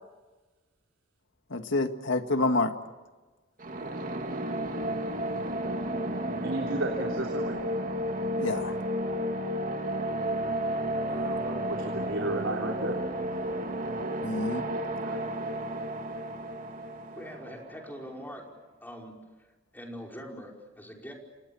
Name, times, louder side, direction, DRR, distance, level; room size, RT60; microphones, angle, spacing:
voice 1, 1.5-2.7 8.4-8.7 14.2-14.7, left 2 dB, 65° left, 7 dB, 2.0 m, -27 dB
sound 1, 3.6-18.3, right 1 dB, 40° right, 2.3 m, -32 dB
voice 2, 6.4-7.6 11.0-12.9 15.0-15.2, right 2 dB, 75° right, 1 dB, 3.4 m, -34 dB
voice 3, 17.1-18.5 18.8-19.2 19.7-21.1, equal, 10° left, 0 dB, 5.1 m, -43 dB
29.5 x 27.0 x 7.1 m, 1.2 s
head